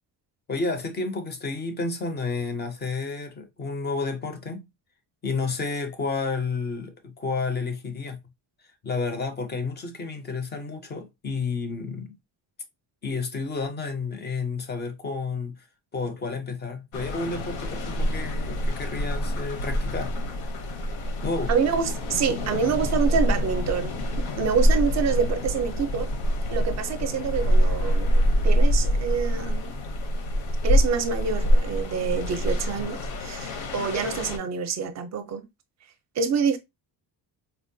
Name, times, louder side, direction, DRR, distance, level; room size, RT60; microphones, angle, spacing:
voice 1, 0.5-4.7 5.2-8.2 8.8-12.2 13.0-15.6 15.9-20.1 21.2-21.5, left 4 dB, 25° left, 0.4 m, -31 dB
sound 1, 16.9-34.4, equal, 85° left, 0.9 m, -25 dB
voice 2, 21.5-23.9 24.4-26.1 26.5-29.7 30.6-35.5 36.2-36.6, right 6 dB, 40° right, 0.5 m, -27 dB
4.4 x 2.1 x 2.6 m
cardioid pair, 180°, 46 cm